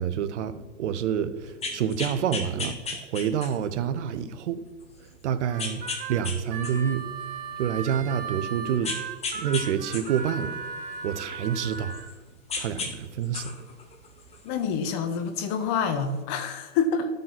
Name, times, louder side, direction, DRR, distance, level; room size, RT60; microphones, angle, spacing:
voice 1, 0.0-4.6 5.2-5.8 6.1-7.1 7.6-9.0 9.3-10.6 11.0-12.0 12.6-13.5, right 8 dB, 70° right, 1.0 m, -28 dB
sound 1, 1.5-3.8 4.3-4.4 5.6-6.4 6.6-7.9 8.8-9.7 9.9-12.1 12.5-12.9 13.2-14.7 15.7-15.8, left 4 dB, 15° left, 1.6 m, -34 dB
Harmonica, 5.5-12.1, right 5 dB, 20° right, 1.0 m, -37 dB
voice 2, 14.4-17.1, left 5 dB, 40° left, 1.4 m, -27 dB
12.5 x 5.4 x 5.8 m
hypercardioid pair, 125°, 37 cm